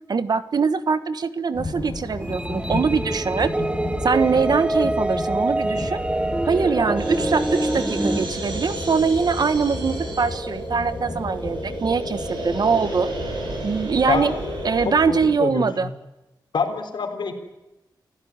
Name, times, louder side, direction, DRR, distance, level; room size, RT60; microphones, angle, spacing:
voice 1, 0.1-3.5 4.0-6.0 6.4-13.1 13.6-14.3 14.6-15.9, right 5 dB, 60° right, 13 dB, 1.3 m, -22 dB
sound 1, 1.5-15.3, left 2 dB, 20° left, 7.7 m, -34 dB
sound 2, 2.2-8.3, right 1 dB, 15° right, 0.8 m, -25 dB
sound 3, 7.0-14.9, right 1 dB, 85° right, 7.6 m, -31 dB
voice 2, 14.9-15.7 16.5-17.3, left 5 dB, 80° left, 5 dB, 3.8 m, -25 dB
28.5 x 15.5 x 9.7 m, 1.0 s
wide cardioid pair, 130°, 8 cm